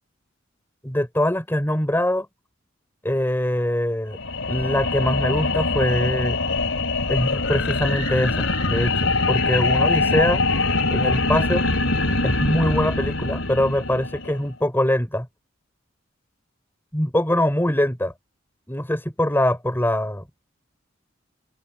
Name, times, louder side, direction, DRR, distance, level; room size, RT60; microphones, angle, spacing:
voice 1, 0.8-2.3 3.0-4.2 4.5-6.4 7.1-10.4 10.9-11.6 12.2-15.3 16.9-18.1 18.7-20.2, left 1 dB, 10° left, 4.1 m, -23 dB
sound 1, 4.1-14.5, left 3 dB, 75° left, 3.6 m, -23 dB
head